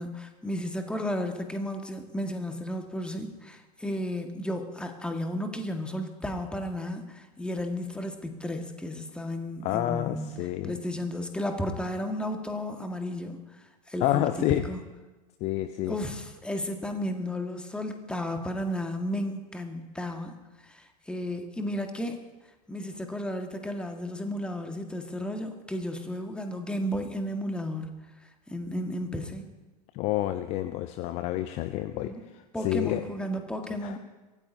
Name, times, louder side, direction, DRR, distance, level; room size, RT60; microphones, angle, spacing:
voice 1, 0.0-14.8 15.8-20.4 20.6-22.2 22.7-27.9 28.5-29.5 31.9-32.3 32.5-34.0, left 1 dB, 5° left, 5 dB, 1.7 m, -33 dB
voice 2, 9.6-10.7 14.0-14.6 15.4-15.9 29.9-32.1 32.6-33.0 33.8-34.0, left 14 dB, 30° left, 11 dB, 0.6 m, -28 dB
23.5 x 17.5 x 2.7 m, 1.2 s
figure-of-eight pair, 90°, 21 cm